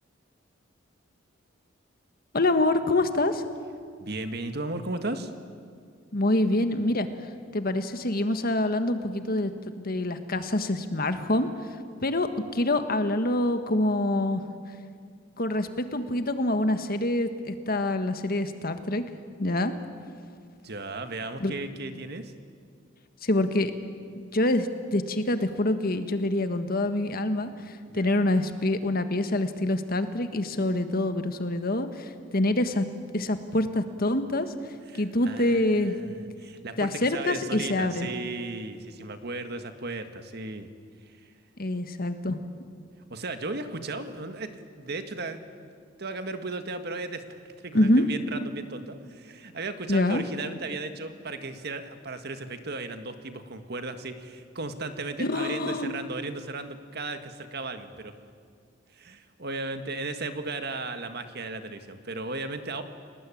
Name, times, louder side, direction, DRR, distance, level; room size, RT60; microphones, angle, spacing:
voice 1, 2.3-3.4 6.1-7.1 7.5-11.5 12.0-14.4 15.4-19.0 19.4-19.7 21.4-21.5 23.2-23.7 24.1-32.8 33.1-34.5 34.9-36.0 36.8-38.1 41.6-42.4 47.7-48.0 49.9-50.2 55.2-55.9, left 1 dB, 50° left, 9 dB, 1.6 m, -26 dB
voice 2, 4.0-5.3 20.6-22.3 27.9-28.2 34.9-40.7 41.1-41.3 43.1-45.7 46.0-58.1 58.9-62.8, right 3 dB, 60° right, 8 dB, 1.8 m, -36 dB
29.5 x 19.0 x 8.7 m, 2.1 s
head